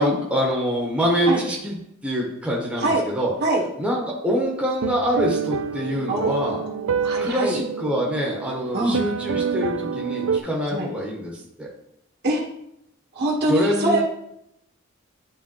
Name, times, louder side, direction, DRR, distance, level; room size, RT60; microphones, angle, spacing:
voice 1, 0.0-1.7 2.0-3.3 3.8-6.6 7.2-11.3 11.6-11.7 13.5-14.0, equal, 5° right, -3 dB, 1.1 m, -25 dB
sound 1, 4.8-10.4, right 6 dB, 90° right, 0.4 m, -27 dB
voice 2, 6.1-7.6 8.7-9.0 10.7-10.9 12.2-12.4 13.1-14.0, right 1 dB, 50° right, -2 dB, 1.4 m, -24 dB
9.7 x 3.6 x 3.0 m, 0.79 s
head